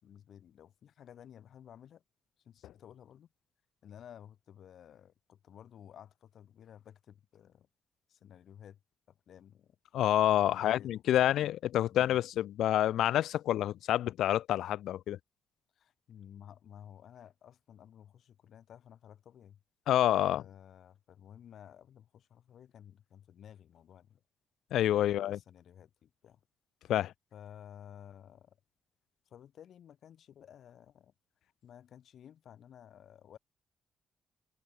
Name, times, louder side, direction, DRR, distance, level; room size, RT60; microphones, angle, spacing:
voice 1, 0.0-2.0 2.4-3.3 3.8-7.7 8.1-8.8 9.1-9.8 10.3-11.3 11.9-12.2 15.8-19.6 20.2-24.2 25.0-26.4 27.3-28.6 29.3-31.1 31.4-33.4, left 9 dB, 60° left, 4.0 m, -54 dB
voice 2, 9.9-15.2 19.9-20.4 24.7-25.4 26.9-27.1, left 12 dB, 85° left, 0.4 m, -28 dB
cardioid pair, 150°, 0 cm